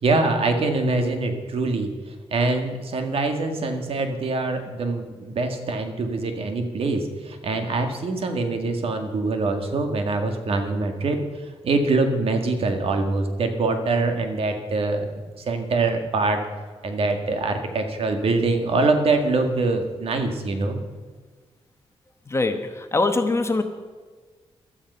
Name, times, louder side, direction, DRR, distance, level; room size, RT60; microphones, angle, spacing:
voice 1, 0.0-16.4 16.8-20.8, right 3 dB, 65° right, 5 dB, 2.0 m, -24 dB
voice 2, 22.3-23.6, left 3 dB, 25° left, 7 dB, 1.1 m, -23 dB
16.0 x 12.0 x 5.6 m, 1.5 s
wide cardioid pair, 125°, 11 cm